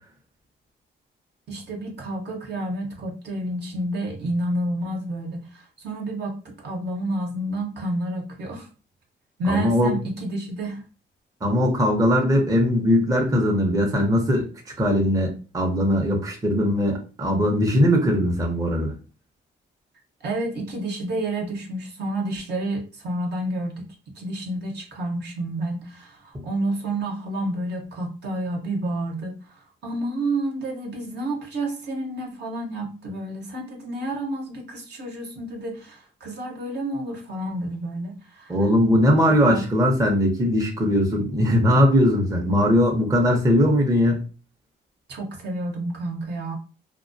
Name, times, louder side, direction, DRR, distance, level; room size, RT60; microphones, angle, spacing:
voice 1, 1.5-8.7 9.4-10.8 20.2-38.6 39.1-39.6 45.1-46.5, right 1 dB, 60° right, 0 dB, 0.9 m, -30 dB
voice 2, 9.5-10.0 11.4-18.9 38.5-44.2, equal, 15° right, 0 dB, 0.6 m, -20 dB
2.3 x 2.2 x 2.5 m, 0.35 s
cardioid pair, 90°, 20 cm